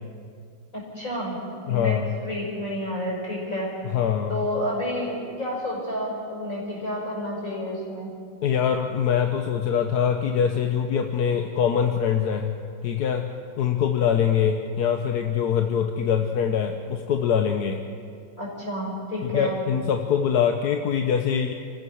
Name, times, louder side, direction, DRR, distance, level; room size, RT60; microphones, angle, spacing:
voice 1, 0.7-1.4 1.7-1.9 2.2-3.9 4.3-8.1 18.4-19.6, left 1 dB, 40° left, -3 dB, 6.8 m, -30 dB
voice 2, 1.7-2.1 3.9-4.4 8.4-12.6 12.8-17.8 19.3-21.5, left 8 dB, 60° left, 5 dB, 1.3 m, -23 dB
29.0 x 15.5 x 6.4 m, 2.3 s
omnidirectional pair, 2.2 m